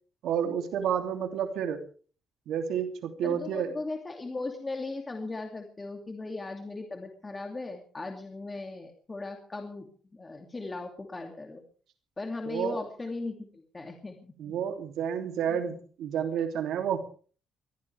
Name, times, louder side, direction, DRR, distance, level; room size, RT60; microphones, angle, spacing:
voice 1, 0.2-1.8 2.5-3.7 12.4-12.8 14.4-17.0, right 8 dB, 80° right, 5 dB, 2.9 m, -30 dB
voice 2, 3.2-9.9 10.1-11.6 12.2-14.5 15.5-15.6, left 3 dB, 20° left, 3 dB, 2.6 m, -38 dB
22.5 x 16.0 x 3.5 m, 0.41 s
cardioid pair, 125°, 0 cm